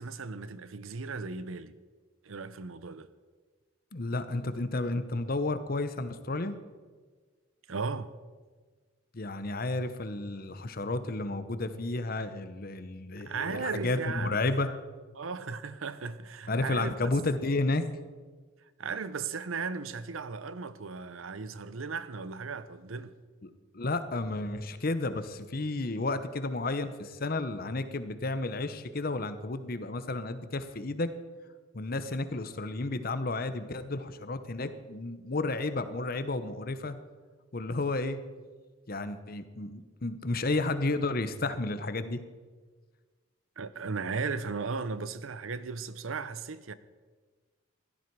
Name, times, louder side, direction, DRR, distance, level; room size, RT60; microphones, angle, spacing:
voice 1, 0.0-1.8 2.2-3.1 7.7-8.1 13.2-14.4 15.1-17.0 18.8-23.1 43.6-46.7, right 4 dB, 90° right, 0.7 m, -36 dB
voice 2, 3.9-6.6 9.1-14.8 16.5-17.9 23.4-31.1 31.7-36.9 37.5-38.2 38.9-42.2, left 2 dB, 45° left, 0.9 m, -32 dB
15.5 x 12.5 x 4.7 m
head